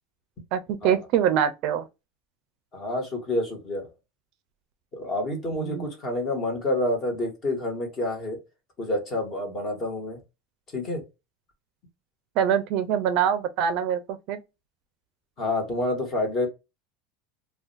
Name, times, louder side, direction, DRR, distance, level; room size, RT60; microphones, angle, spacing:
voice 1, 0.5-1.9 5.5-5.9 12.4-14.4, right 9 dB, 50° right, 0.4 m, -24 dB
voice 2, 2.7-3.9 4.9-8.4 8.8-10.2 10.7-11.0 15.4-16.5, left 1 dB, 30° left, 1.2 m, -28 dB
2.5 x 2.2 x 3.9 m
supercardioid pair, 155°, 0 cm